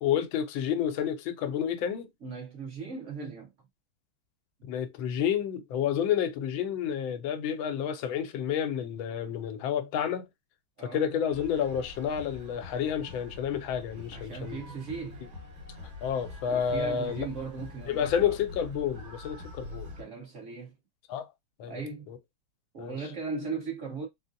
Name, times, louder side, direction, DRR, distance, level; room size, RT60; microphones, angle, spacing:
voice 1, 0.0-2.1 4.7-10.3 10.8-14.6 16.0-17.3 17.9-19.9 21.1-21.3 21.6-21.8 22.1-22.2 22.8-23.0, left 8 dB, 80° left, 1.3 m, -30 dB
voice 2, 2.2-3.5 10.8-11.1 14.1-15.2 16.5-18.4 20.0-20.7 21.7-22.1 22.7-24.1, right 4 dB, 45° right, 1.1 m, -38 dB
sound 1, 11.3-20.0, left 3 dB, 75° right, 1.9 m, -45 dB
3.9 x 2.0 x 2.5 m
omnidirectional pair, 2.2 m